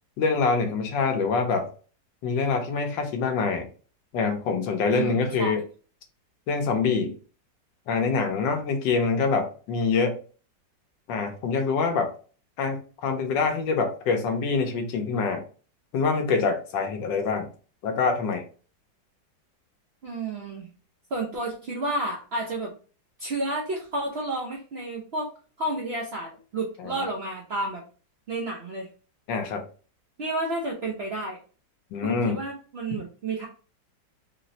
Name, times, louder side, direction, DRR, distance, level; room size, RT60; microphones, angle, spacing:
voice 1, 0.2-1.7 2.2-3.7 4.1-5.6 6.5-7.1 7.9-10.2 11.1-12.1 12.6-15.4 15.9-17.5 17.8-18.5 26.8-26.9 29.3-29.6 31.9-32.4 32.9-33.0, left 4 dB, 90° left, 5 dB, 1.4 m, -25 dB
voice 2, 4.9-5.6 20.0-20.7 21.1-22.7 23.2-25.3 25.6-27.8 28.3-28.9 30.2-31.4 32.0-33.5, right 2 dB, 70° right, -2 dB, 0.6 m, -31 dB
4.0 x 2.0 x 2.6 m, 0.38 s
omnidirectional pair, 1.9 m